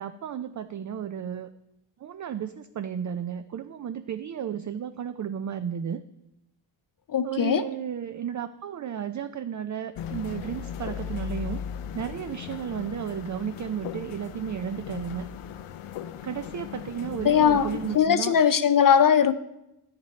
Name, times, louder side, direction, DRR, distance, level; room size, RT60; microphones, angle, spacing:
voice 1, 0.0-1.5 2.0-6.0 7.2-11.6 11.9-15.3 16.2-18.4, right 8 dB, 40° right, 0.4 m, -33 dB
voice 2, 7.1-7.6 17.2-19.3, left 8 dB, 45° left, 0.5 m, -20 dB
sound 1, 9.9-18.0, left 9 dB, 85° left, 0.6 m, -37 dB
10.5 x 5.2 x 4.1 m
cardioid pair, 55°, 49 cm